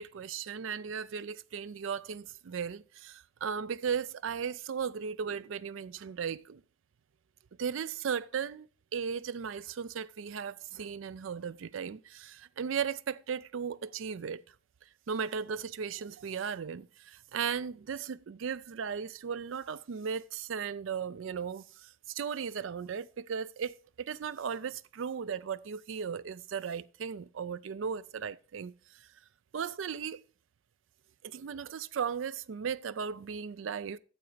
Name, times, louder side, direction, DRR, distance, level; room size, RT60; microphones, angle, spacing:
voice 1, 0.0-6.6 7.6-14.4 15.1-28.7 29.5-30.2 31.2-34.0, right 7 dB, 80° right, 0.4 m, -36 dB
9.4 x 6.9 x 4.9 m
head